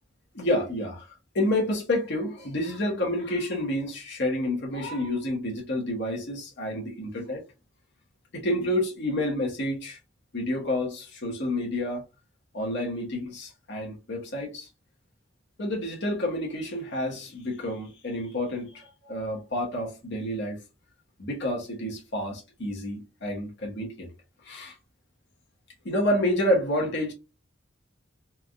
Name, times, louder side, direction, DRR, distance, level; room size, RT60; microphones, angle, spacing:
voice 1, 0.3-7.4 8.3-10.0 10.3-12.0 12.5-14.7 15.6-20.6 21.2-24.1 24.4-24.7 25.8-27.1, left 1 dB, 60° left, 1.1 m, -29 dB
3.4 x 2.3 x 2.4 m
head